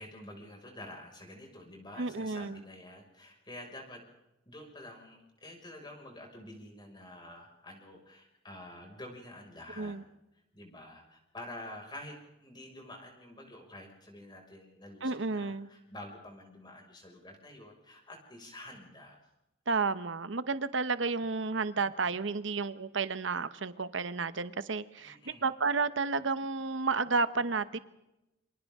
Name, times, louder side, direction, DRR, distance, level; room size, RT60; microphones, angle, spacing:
voice 1, 0.0-4.1 4.5-10.0 10.5-19.2 25.0-25.5, left 1 dB, 25° left, 1 dB, 5.8 m, -48 dB
voice 2, 2.0-2.6 9.8-10.0 15.0-15.7 19.7-27.8, right 4 dB, 75° right, 13 dB, 1.0 m, -31 dB
28.0 x 26.5 x 3.7 m, 0.91 s
head